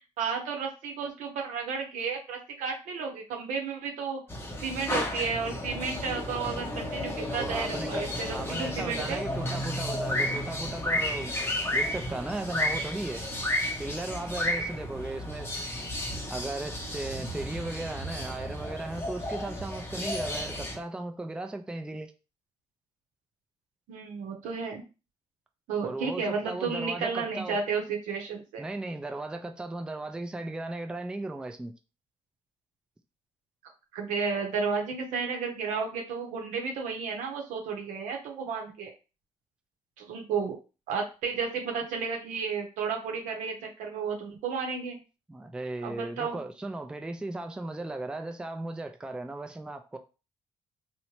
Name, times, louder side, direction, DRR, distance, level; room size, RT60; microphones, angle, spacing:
voice 1, 0.2-4.2 4.6-9.2 23.9-24.8 25.7-28.6 33.9-38.9 40.0-40.6 40.9-45.0 45.8-46.4, right 5 dB, 85° right, 0.7 m, -32 dB
sound 1, 4.3-20.8, left 1 dB, 20° left, 0.7 m, -33 dB
voice 2, 7.4-11.3 11.7-13.2 13.8-15.6 16.3-22.1 25.8-27.6 28.6-31.7 45.3-50.0, right 2 dB, 5° right, 0.4 m, -36 dB
2.8 x 2.1 x 3.0 m
cardioid pair, 85°, 12 cm